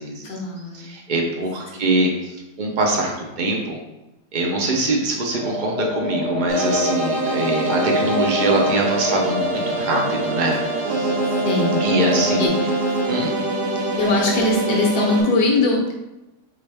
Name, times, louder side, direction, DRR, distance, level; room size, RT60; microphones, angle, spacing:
voice 1, 0.2-0.9 1.7-1.9 11.4-11.8 12.4-12.5 13.0-13.1 14.0-15.9, left 2 dB, 65° left, -1 dB, 1.4 m, -21 dB
voice 2, 0.8-2.1 2.6-3.8 4.3-10.6 10.9-11.2 11.8-12.5 13.1-13.3, right 2 dB, 60° right, 0 dB, 0.5 m, -23 dB
sound 1, 5.3-12.5, left 3 dB, 85° left, 1.5 m, -28 dB
sound 2, 6.5-15.2, right 2 dB, 80° right, 1.4 m, -24 dB
4.2 x 3.6 x 3.4 m, 0.96 s
omnidirectional pair, 1.8 m